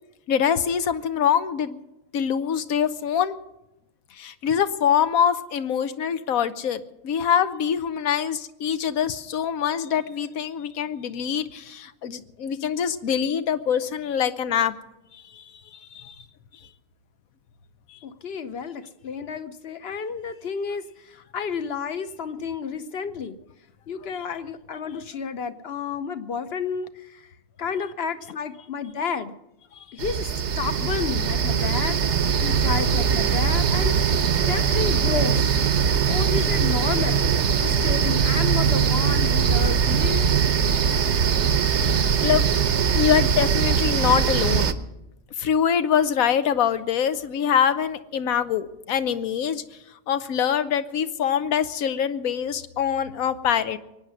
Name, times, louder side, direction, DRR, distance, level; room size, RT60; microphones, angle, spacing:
voice 1, 0.3-1.8 2.1-3.4 4.1-14.7 15.2-15.4 15.9-16.1 17.9-18.0 41.7-42.5 42.9-44.7 45.4-49.6 50.1-53.8, left 8 dB, 90° left, 12 dB, 1.3 m, -24 dB
voice 2, 18.0-23.4 23.9-29.3 29.9-32.1 32.4-34.0 34.5-35.5 36.1-37.3 37.6-40.3, left 6 dB, 55° left, 11 dB, 1.0 m, -31 dB
sound 1, 30.0-44.7, right 7 dB, 60° right, 1.0 m, -21 dB
23.0 x 9.5 x 6.3 m, 0.91 s
omnidirectional pair, 1.4 m